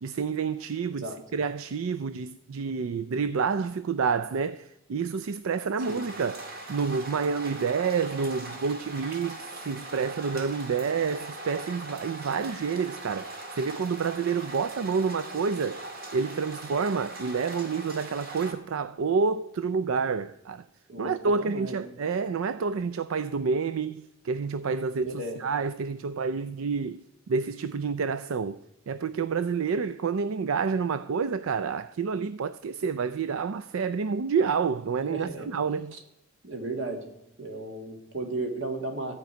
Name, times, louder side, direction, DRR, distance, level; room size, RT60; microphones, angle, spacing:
voice 1, 0.0-15.8 16.1-20.6 21.0-36.0, right 5 dB, 80° right, 0.4 m, -29 dB
sound 1, 5.8-18.5, right 2 dB, 45° right, 2.0 m, -41 dB
voice 2, 21.4-21.9 25.0-25.4 35.1-35.5 35.9-36.0 36.4-37.0 37.4-39.1, right 2 dB, 65° right, 1.9 m, -34 dB
14.5 x 5.3 x 9.1 m
head